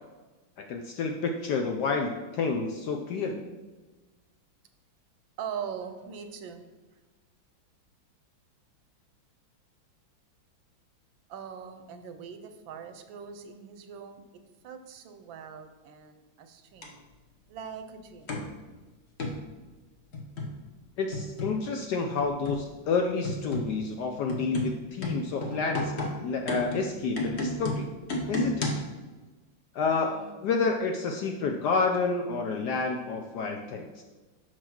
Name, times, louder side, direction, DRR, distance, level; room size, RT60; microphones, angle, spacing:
voice 1, 0.7-3.4 21.0-25.9 26.2-27.9 28.3-28.7 29.7-34.0, left 4 dB, 75° left, 3 dB, 1.0 m, -29 dB
voice 2, 5.4-6.6 11.3-14.2 14.6-17.0 17.5-18.4 30.0-30.4, right 7 dB, 75° right, 7 dB, 1.3 m, -41 dB
sound 1, 16.8-16.9 18.3-18.5 19.2-19.4 20.1-20.6 21.1-21.6 22.2-22.7 23.2-23.8 24.3-28.9, left 1 dB, 45° left, 0.9 m, -32 dB
6.3 x 4.7 x 5.9 m, 1.2 s
omnidirectional pair, 2.3 m